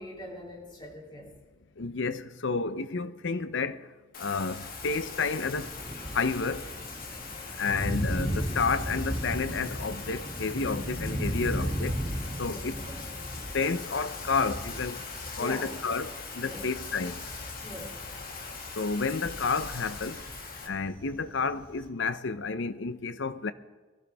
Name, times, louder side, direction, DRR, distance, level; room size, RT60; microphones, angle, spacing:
voice 1, 0.0-1.3 12.5-13.0 15.4-15.7 16.4-16.6 17.6-17.9, left 1 dB, 25° left, 3.2 m, -42 dB
voice 2, 1.8-3.8 4.2-5.7 6.1-6.6 7.6-12.0 12.4-12.7 13.5-15.0 15.4-17.2 18.8-20.2 20.7-23.5, left 4 dB, 65° left, 0.7 m, -30 dB
Bathtub (filling or washing), 4.1-20.7, left 5 dB, 50° left, 2.1 m, -41 dB
Thunder, 4.4-21.9, equal, 25° right, 1.8 m, -37 dB
22.0 x 14.0 x 3.5 m
head